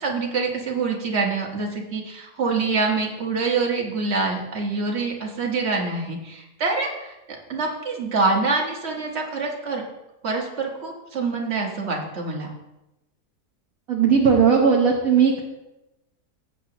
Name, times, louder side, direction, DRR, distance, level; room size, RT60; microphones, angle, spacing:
voice 1, 0.0-7.2 7.5-9.8 10.2-12.5, right 4 dB, 40° right, 0 dB, 1.8 m, -25 dB
voice 2, 13.9-15.4, right 6 dB, 60° right, -1 dB, 1.4 m, -17 dB
15.5 x 8.3 x 3.0 m, 0.96 s
omnidirectional pair, 1.7 m